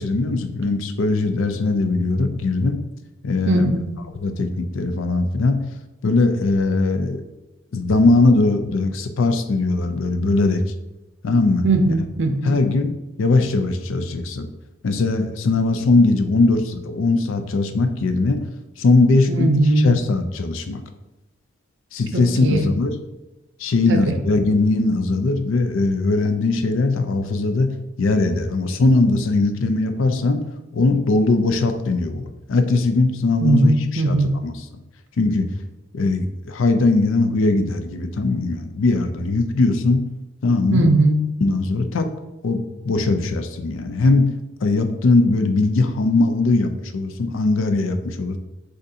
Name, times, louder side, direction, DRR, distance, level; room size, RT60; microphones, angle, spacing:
voice 1, 0.0-2.8 3.2-3.8 4.1-5.6 6.0-7.2 7.7-10.6 11.2-11.7 12.4-12.9 13.2-14.5 14.8-18.4 18.8-20.8 21.9-23.0 23.6-30.4 30.7-34.7 35.2-35.5 35.9-40.1 40.4-40.9 41.4-42.1 42.4-44.3 44.6-48.4, left 3 dB, 70° left, 8 dB, 0.4 m, -20 dB
voice 2, 3.5-3.9 11.6-12.6 19.3-20.0 22.1-22.7 23.9-24.0 33.4-34.4 40.7-41.2, right 2 dB, 60° right, 5 dB, 0.6 m, -19 dB
6.4 x 2.6 x 2.7 m, 1.0 s
head